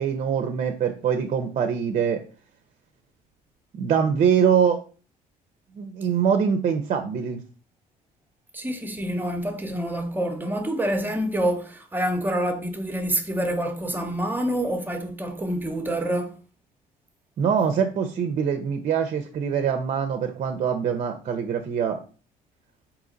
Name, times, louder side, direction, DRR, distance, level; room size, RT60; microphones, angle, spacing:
voice 1, 0.0-2.2 3.7-4.8 5.7-7.4 17.4-22.0, right 7 dB, 45° right, 0.5 m, -23 dB
voice 2, 8.5-16.3, right 1 dB, 10° right, 0.7 m, -27 dB
3.9 x 2.9 x 3.8 m
cardioid pair, 110°, 17 cm